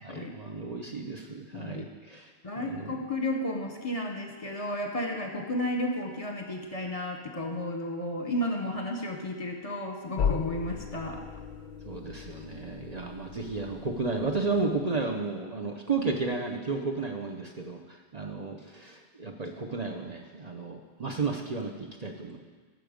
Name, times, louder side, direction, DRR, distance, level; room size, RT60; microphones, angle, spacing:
voice 1, 0.0-3.0 11.8-22.4, right 3 dB, 40° right, 2 dB, 0.8 m, -33 dB
voice 2, 1.5-1.9 2.4-11.2, left 1 dB, 35° left, 2 dB, 1.0 m, -33 dB
sound 1, 10.2-14.9, left 7 dB, 55° left, 0.6 m, -36 dB
14.0 x 6.4 x 5.2 m, 1.4 s
omnidirectional pair, 1.1 m